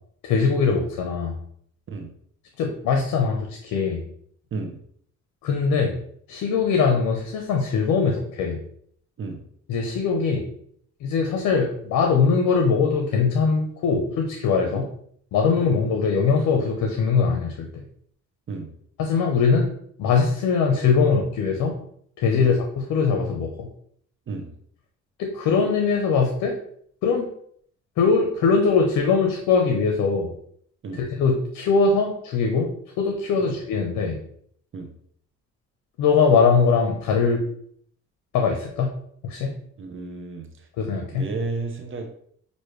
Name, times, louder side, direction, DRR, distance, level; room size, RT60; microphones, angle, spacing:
voice 1, 0.2-1.4 2.6-4.0 5.4-6.0 6.3-8.6 9.7-10.5 11.0-14.9 15.3-17.8 19.0-19.7 20.0-21.8 22.2-23.7 25.2-26.6 27.0-27.3 28.0-30.3 30.9-34.2 36.0-37.4 38.3-39.0 39.2-39.5 40.8-41.3, left 5 dB, 90° left, 2 dB, 0.8 m, -21 dB
voice 2, 39.8-40.7 41.1-42.1, right 3 dB, 40° right, 5 dB, 0.7 m, -33 dB
6.3 x 2.7 x 3.1 m, 0.63 s
cardioid pair, 90°, 30 cm